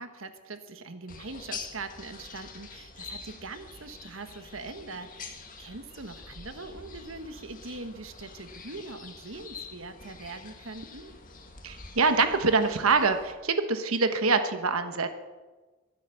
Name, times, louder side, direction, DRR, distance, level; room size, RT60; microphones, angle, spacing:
voice 1, 0.0-11.1, right 3 dB, 70° right, 8 dB, 1.4 m, -42 dB
sound 1, 1.1-13.3, left 4 dB, 40° left, 2.0 m, -46 dB
voice 2, 11.6-15.1, right 4 dB, 85° right, 8 dB, 1.2 m, -25 dB
23.0 x 8.2 x 6.9 m, 1.3 s
head